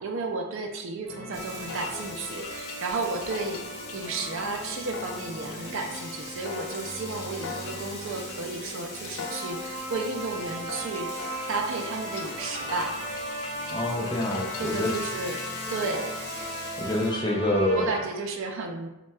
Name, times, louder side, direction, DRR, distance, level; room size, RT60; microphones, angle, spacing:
voice 1, 0.0-12.9 14.6-16.1 17.7-18.9, right 3 dB, 60° right, 4 dB, 0.4 m, -33 dB
sound 1, 1.0-18.0, equal, 35° right, 1.3 m, -38 dB
Frying (food), 1.3-17.1, left 3 dB, 50° left, 0.8 m, -43 dB
sound 2, 1.7-16.7, left 4 dB, 80° left, 0.4 m, -43 dB
voice 2, 13.7-15.0 16.8-17.9, left 1 dB, 20° left, -2 dB, 0.5 m, -26 dB
5.3 x 2.2 x 2.3 m, 0.94 s
head